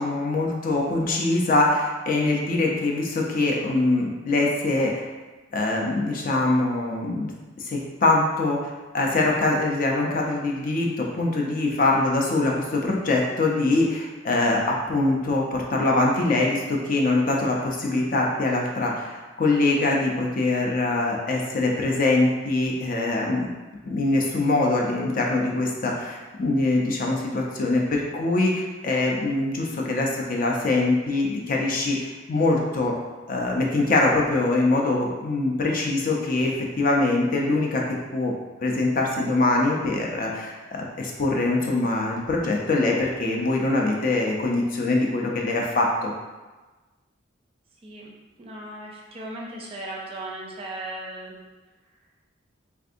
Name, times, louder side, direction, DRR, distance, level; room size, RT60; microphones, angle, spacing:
voice 1, 0.0-5.0 5.5-7.3 7.6-23.5 23.9-32.9 33.3-38.3 38.6-46.1, left 2 dB, 45° left, -1 dB, 0.5 m, -23 dB
voice 2, 47.8-48.1 48.4-51.4, right 1 dB, 30° right, -2 dB, 0.5 m, -37 dB
3.4 x 2.5 x 2.5 m, 1.2 s
head